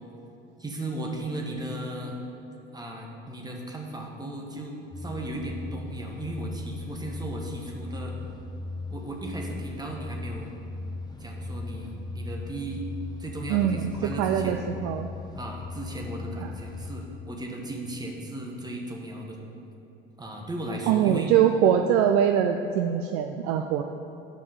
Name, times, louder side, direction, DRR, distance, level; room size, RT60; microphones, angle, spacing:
voice 1, 0.6-2.1 2.7-8.1 8.9-10.5 11.2-12.8 13.2-14.6 15.3-19.4 20.2-21.3, right 1 dB, 15° right, 0 dB, 1.4 m, -36 dB
sound 1, 4.9-17.1, left 2 dB, 15° left, 0.8 m, -38 dB
voice 2, 13.5-15.1 16.4-16.5 20.9-23.8, right 9 dB, 50° right, 6 dB, 0.4 m, -23 dB
7.6 x 5.4 x 6.8 m, 2.9 s
figure-of-eight pair, 65°, 29 cm